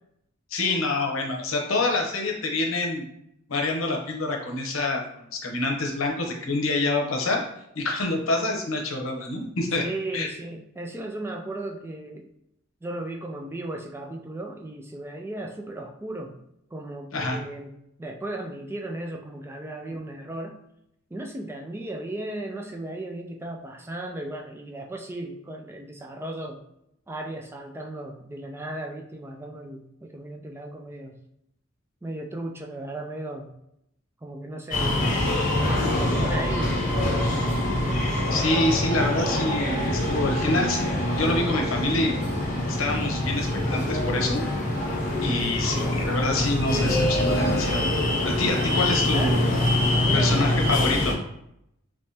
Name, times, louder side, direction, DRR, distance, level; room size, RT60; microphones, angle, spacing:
voice 1, 0.5-3.0 3.5-5.0 5.3-7.4 7.7-9.8 10.1-10.3 17.1-17.4 38.3-40.8 41.2-42.1 42.7-44.4 45.2-47.9 48.2-49.5 50.1-51.2, left 2 dB, 80° left, 1 dB, 0.8 m, -26 dB
voice 2, 9.8-12.3 12.8-16.4 16.7-20.6 21.1-26.6 27.1-31.2 32.0-33.5 34.2-35.2 35.9-36.9 49.1-49.6 49.9-50.5, right 1 dB, 10° right, 2 dB, 0.3 m, -36 dB
sound 1, 34.7-51.1, left 1 dB, 45° left, 1.2 m, -24 dB
3.5 x 3.0 x 2.8 m, 0.77 s
head